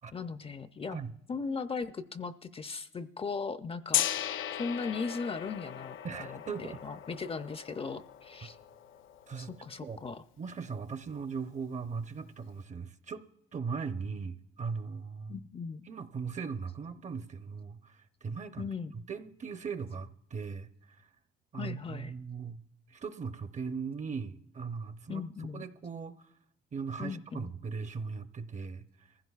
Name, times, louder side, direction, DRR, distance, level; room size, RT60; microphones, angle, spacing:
voice 1, 0.1-1.0 1.3-4.1 4.6-8.6 9.4-10.2 15.3-15.8 18.6-18.9 21.5-22.1 25.1-25.6 27.0-27.5, left 5 dB, 30° left, 0.5 m, -38 dB
Gong, 3.9-9.8, left 11 dB, 85° left, 0.5 m, -37 dB
voice 2, 6.0-6.8 8.4-8.5 9.3-9.5 9.8-10.0 10.4-15.4 15.9-18.7 18.9-21.0 21.5-22.6 22.9-25.2 25.5-26.2 26.7-29.1, right 5 dB, 35° right, 0.7 m, -39 dB
23.0 x 15.5 x 2.3 m
cardioid pair, 90°, 20 cm